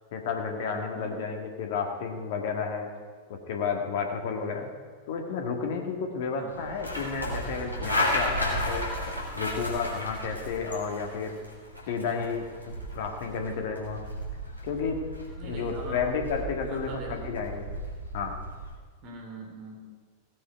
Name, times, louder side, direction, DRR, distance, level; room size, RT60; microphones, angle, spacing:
voice 1, 0.1-2.9 3.3-4.7 5.1-8.9 9.3-11.4 11.9-12.5 12.9-14.0 14.6-15.0 15.4-17.7 18.1-18.4, left 5 dB, 55° left, 3 dB, 1.8 m, -31 dB
sound 1, 6.5-18.8, equal, 90° right, 2.5 m, -34 dB
voice 2, 15.4-16.0 16.6-17.3 19.0-19.9, right 2 dB, 40° right, 2 dB, 2.9 m, -42 dB
17.0 x 8.6 x 4.6 m, 1.5 s
figure-of-eight pair, 90°, 0 cm